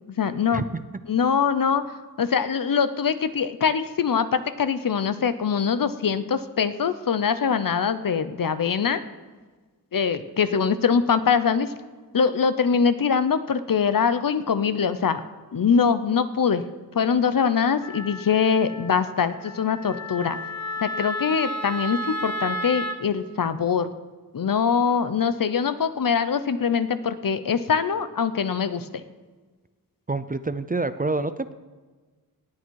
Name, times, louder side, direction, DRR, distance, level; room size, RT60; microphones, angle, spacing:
voice 1, 0.2-0.7 1.1-9.0 9.9-11.7 12.1-15.2 15.5-16.6 16.9-20.4 20.8-23.9 24.3-29.0, left 6 dB, 60° left, 12 dB, 0.8 m, -23 dB
Wind instrument woodwind instrument, 17.8-23.0, equal, 45° left, 1.2 m, -33 dB
voice 2, 30.1-31.5, right 3 dB, 25° right, 13 dB, 0.5 m, -27 dB
18.5 x 8.4 x 4.7 m, 1.4 s
wide cardioid pair, 75°, 37 cm